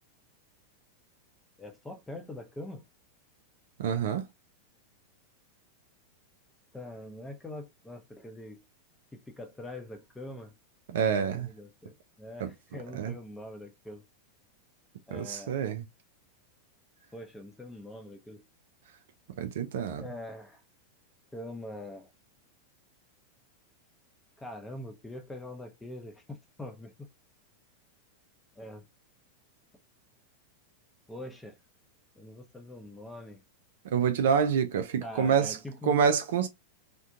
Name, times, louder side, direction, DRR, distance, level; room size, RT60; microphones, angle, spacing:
voice 1, 1.6-2.8 6.7-8.6 9.1-10.5 11.0-14.0 15.1-15.6 17.1-18.4 20.0-20.6 21.3-22.1 24.4-26.9 28.6-28.9 31.1-31.6 32.2-33.4 35.0-36.0, left 1 dB, 10° left, 0.7 m, -43 dB
voice 2, 3.8-4.2 10.9-11.5 12.4-12.5 12.9-13.1 15.1-15.8 19.4-20.0 33.9-35.6 35.8-36.5, right 7 dB, 55° right, 0.4 m, -27 dB
2.5 x 2.2 x 2.7 m
figure-of-eight pair, 90°, 0 cm